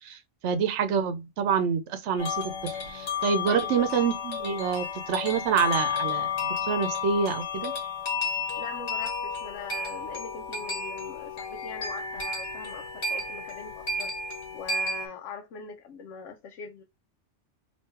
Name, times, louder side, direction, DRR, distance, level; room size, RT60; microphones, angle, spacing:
voice 1, 0.0-2.5 2.9-6.3 6.7-7.7, right 6 dB, 70° right, 1.0 m, -27 dB
sound 1, 2.2-15.1, left 4 dB, 60° left, 1.6 m, -32 dB
voice 2, 3.5-3.9 8.6-14.1 14.5-16.8, left 4 dB, 85° left, 1.1 m, -42 dB
3.7 x 3.0 x 4.2 m
omnidirectional pair, 1.3 m